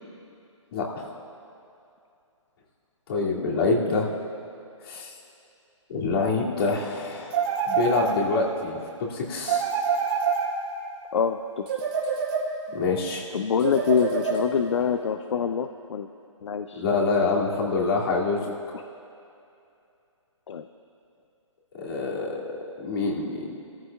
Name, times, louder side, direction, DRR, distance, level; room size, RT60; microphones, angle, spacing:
voice 1, 0.7-1.1 3.1-4.1 4.8-5.1 5.9-9.7 12.7-13.2 16.8-18.4 21.7-23.6, left 3 dB, 50° left, -4 dB, 2.6 m, -26 dB
voice 2, 3.2-4.1 11.1-11.7 13.3-16.1 16.4-16.8 18.7-18.8 20.5-20.7, left 6 dB, 65° left, 8 dB, 0.6 m, -26 dB
sound 1, 7.3-8.6 9.4-11.0 11.7-12.8 13.6-14.8, right 6 dB, 45° right, 2.7 m, -27 dB
25.0 x 14.5 x 2.4 m, 2.6 s
hypercardioid pair, 140°, 17 cm